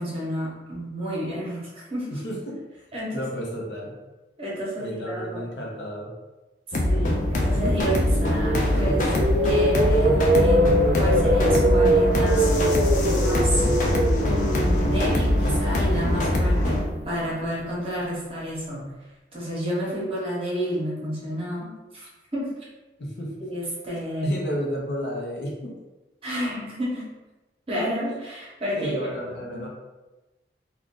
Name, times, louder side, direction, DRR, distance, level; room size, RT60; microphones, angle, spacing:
voice 1, 0.0-2.1 2.9-3.2 4.4-5.4 6.7-9.1 9.4-12.5 13.1-13.6 14.2-18.9 19.3-22.5 23.4-24.3 26.2-27.1 27.7-29.7, right 1 dB, 30° right, -5 dB, 0.9 m, -30 dB
voice 2, 2.1-2.6 3.1-3.9 4.8-6.1 23.0-23.3 24.2-25.8 28.7-29.7, equal, 75° left, -2 dB, 0.7 m, -31 dB
sound 1, 6.7-16.8, left 1 dB, 45° left, 0.4 m, -22 dB
sound 2, 7.3-17.4, right 1 dB, 60° right, 0.6 m, -24 dB
2.5 x 2.3 x 3.6 m, 1.1 s
head